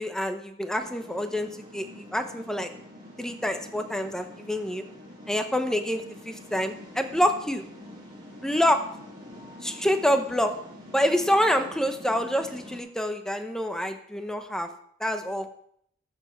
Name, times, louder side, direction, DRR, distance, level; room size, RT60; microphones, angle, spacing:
voice 1, 0.0-2.7 3.2-4.8 5.3-7.6 8.2-8.8 9.6-10.5 10.9-14.7 15.0-15.5, equal, 5° left, 7 dB, 0.9 m, -27 dB
sound 1, 0.8-12.8, left 1 dB, 25° right, 3.2 m, -46 dB
13.5 x 7.2 x 4.5 m, 0.67 s
head